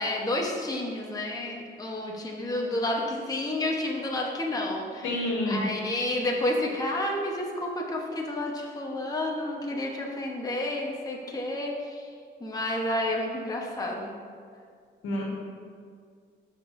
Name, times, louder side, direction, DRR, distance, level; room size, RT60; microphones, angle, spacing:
voice 1, 0.0-12.1 12.4-14.1, left 1 dB, 20° left, -1 dB, 1.0 m, -30 dB
voice 2, 5.0-5.6 15.0-15.2, left 1 dB, 80° left, -2 dB, 1.7 m, -28 dB
12.0 x 5.2 x 2.6 m, 2.1 s
cardioid pair, 90°, 20 cm